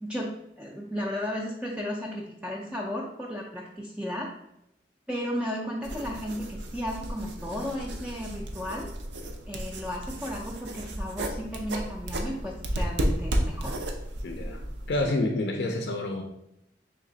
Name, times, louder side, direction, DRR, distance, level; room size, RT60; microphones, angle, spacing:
voice 1, 0.0-4.3 5.1-8.9 9.5-13.7 15.0-15.1 15.6-15.8, equal, 5° right, -3 dB, 0.4 m, -34 dB
sound 1, 5.8-15.1, right 1 dB, 80° right, 0.6 m, -33 dB
voice 2, 14.2-14.6 14.9-16.2, left 2 dB, 70° left, 3 dB, 0.4 m, -28 dB
3.4 x 3.1 x 3.8 m, 0.81 s
head